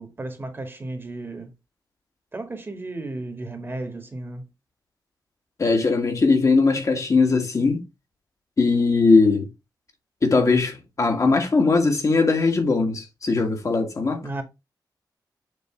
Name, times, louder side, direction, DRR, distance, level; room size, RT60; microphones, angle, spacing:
voice 1, 0.0-1.5 2.3-4.5 14.2-14.4, right 2 dB, 30° right, 1.7 m, -34 dB
voice 2, 5.6-7.8 8.6-9.5 10.2-14.2, left 3 dB, 45° left, 1.7 m, -20 dB
6.8 x 3.2 x 4.5 m
wide cardioid pair, 95°, 8 cm